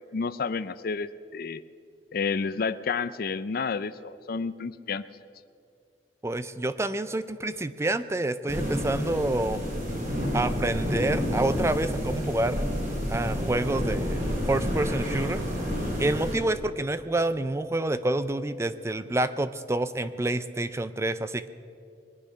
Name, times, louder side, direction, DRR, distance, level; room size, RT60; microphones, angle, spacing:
voice 1, 0.1-1.6 2.1-5.0, left 5 dB, 55° left, 15 dB, 0.5 m, -30 dB
voice 2, 6.2-9.6 10.3-12.6 13.1-15.4 16.0-21.5, right 2 dB, 15° right, 13 dB, 0.4 m, -28 dB
sound 1, 8.5-16.3, equal, 50° right, 3.9 m, -29 dB
21.5 x 10.0 x 6.4 m, 2.3 s
head